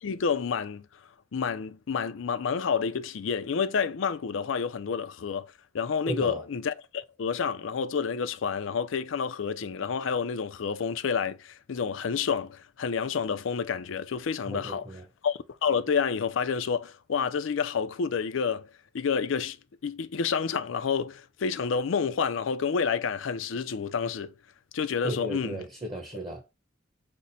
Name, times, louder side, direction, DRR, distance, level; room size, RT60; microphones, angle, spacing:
voice 1, 0.0-0.8 1.3-5.5 5.7-14.8 15.2-18.7 18.9-19.6 19.8-24.3 24.7-25.6, left 6 dB, 75° left, 0.5 m, -29 dB
voice 2, 6.0-6.4 14.4-15.0 25.0-26.4, right 1 dB, 25° right, 1.0 m, -35 dB
6.1 x 2.1 x 4.1 m
head